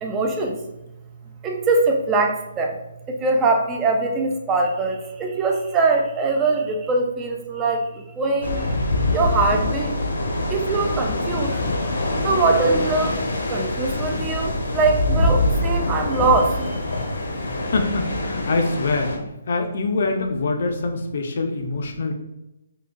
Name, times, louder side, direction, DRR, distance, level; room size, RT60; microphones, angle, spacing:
voice 1, 0.0-0.6 1.4-2.8 3.1-8.7 9.1-9.9 10.5-11.9 12.2-13.2 13.5-16.8, right 3 dB, 10° right, 2 dB, 0.3 m, -22 dB
sound 1, 8.4-19.2, left 1 dB, 75° left, 0.7 m, -24 dB
voice 2, 17.7-19.1 19.5-22.1, left 3 dB, 45° left, 4 dB, 0.5 m, -24 dB
3.8 x 2.7 x 2.4 m, 0.92 s
hypercardioid pair, 175°, 0 cm